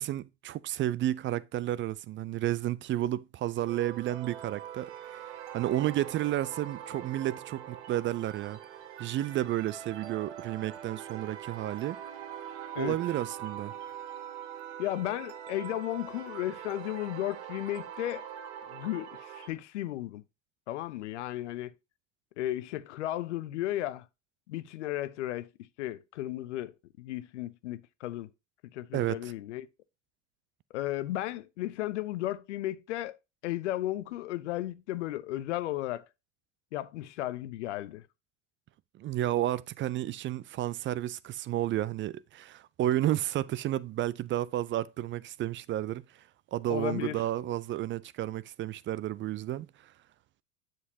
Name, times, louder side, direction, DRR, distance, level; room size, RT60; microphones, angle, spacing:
voice 1, 0.0-5.2 5.5-8.6 9.0-12.0 12.8-13.7 28.9-29.3 39.0-46.0 46.5-49.9, right 13 dB, 35° right, 0.4 m, -31 dB
sound 1, 3.7-19.5, right 10 dB, 80° right, 1.2 m, -43 dB
voice 2, 14.8-18.3 18.7-20.2 20.7-21.7 22.4-24.1 24.5-28.3 28.7-29.7 30.7-33.2 33.4-36.1 36.7-38.0 46.7-47.2, left 14 dB, 85° left, 0.6 m, -34 dB
7.4 x 6.5 x 2.7 m
hypercardioid pair, 85°, 34 cm